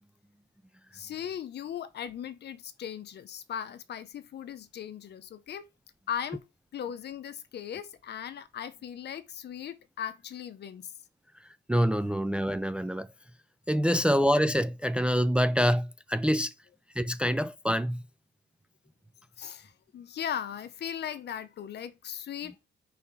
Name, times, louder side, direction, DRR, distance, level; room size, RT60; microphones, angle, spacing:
voice 1, 0.9-5.7 6.1-6.4 6.7-10.9 19.4-22.6, left 9 dB, 60° left, 0.8 m, -38 dB
voice 2, 11.7-13.1 13.7-16.5 17.0-18.0, equal, 5° right, 0.3 m, -26 dB
4.3 x 4.2 x 5.3 m
cardioid pair, 90°, 20 cm